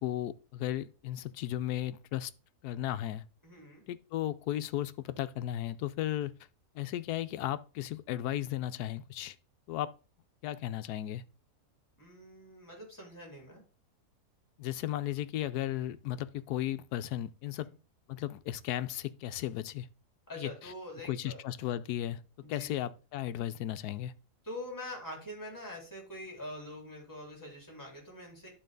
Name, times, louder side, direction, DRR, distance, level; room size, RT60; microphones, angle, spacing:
voice 1, 0.0-2.3 2.6-3.2 3.9-6.3 6.7-9.4 9.7-9.9 10.4-11.2 14.6-17.7 18.1-19.9 20.4-20.7 21.1-22.2 22.5-24.1, left 13 dB, 80° left, 1.1 m, -35 dB
voice 2, 3.4-3.8 12.0-13.6 17.6-17.7 20.3-21.4 22.4-22.7 24.4-28.5, left 1 dB, 10° left, 3.6 m, -44 dB
11.5 x 4.1 x 3.8 m
omnidirectional pair, 1.7 m